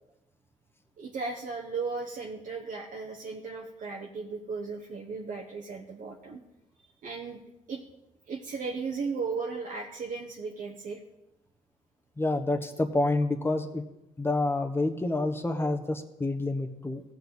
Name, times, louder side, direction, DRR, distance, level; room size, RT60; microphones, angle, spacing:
voice 1, 1.0-6.4 7.0-7.4 7.7-7.8 8.3-11.0, right 4 dB, 65° right, -1 dB, 1.2 m, -36 dB
voice 2, 12.2-13.8 14.2-17.0, left 2 dB, 15° left, 6 dB, 1.3 m, -28 dB
15.5 x 7.1 x 4.1 m, 0.94 s
cardioid pair, 70°, 15 cm